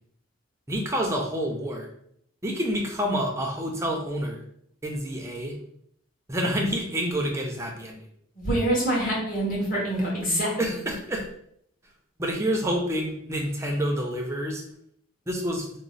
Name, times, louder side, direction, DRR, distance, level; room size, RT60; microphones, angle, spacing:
voice 1, 0.7-1.9 2.4-4.4 4.8-5.5 6.3-8.0 10.6-11.3 12.2-14.6 15.3-15.7, equal, 15° right, 0 dB, 0.5 m, -28 dB
voice 2, 8.4-10.8, right 1 dB, 40° left, -6 dB, 1.4 m, -26 dB
3.0 x 2.0 x 4.0 m, 0.69 s
head